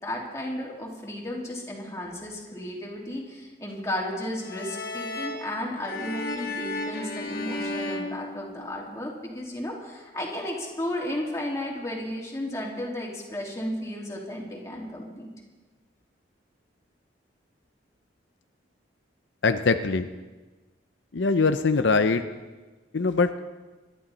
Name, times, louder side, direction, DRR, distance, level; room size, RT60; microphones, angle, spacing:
voice 1, 0.0-15.3, left 1 dB, 15° left, -3 dB, 3.0 m, -34 dB
sound 1, 4.4-9.0, left 2 dB, 55° left, 1.6 m, -34 dB
voice 2, 19.4-20.1 21.1-22.2 22.9-23.3, left 4 dB, 75° left, 8 dB, 0.7 m, -22 dB
26.0 x 11.5 x 4.2 m, 1.3 s
head